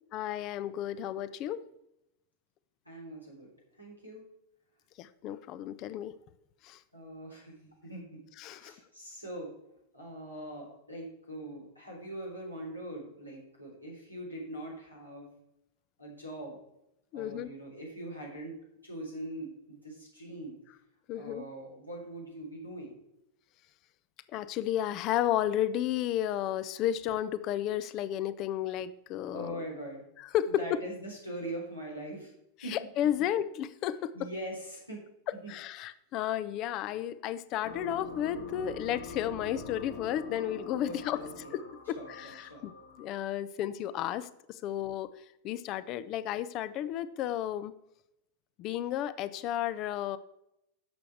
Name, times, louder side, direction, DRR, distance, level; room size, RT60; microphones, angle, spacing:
voice 1, 0.1-1.6 5.0-6.1 6.6-6.8 8.4-8.7 17.1-17.5 21.1-21.4 24.3-29.6 30.3-30.8 32.7-34.3 35.5-41.2 41.5-41.6 41.9-42.7 43.0-45.1 45.4-47.7 48.6-50.2, left 11 dB, 40° left, 15 dB, 0.6 m, -32 dB
voice 2, 2.9-3.5 3.8-4.2 6.9-8.2 8.5-9.5 9.9-15.3 16.0-16.6 17.1-20.5 21.1-23.0 29.3-30.0 30.5-32.3 32.6-32.8 34.1-35.0 35.4-35.5 40.8-41.5 41.9-42.6, right 1 dB, 85° left, -3 dB, 3.8 m, -42 dB
sound 1, 37.6-43.3, left 3 dB, 70° left, 4.3 m, -45 dB
11.5 x 7.1 x 4.7 m, 0.82 s
figure-of-eight pair, 90°, 0 cm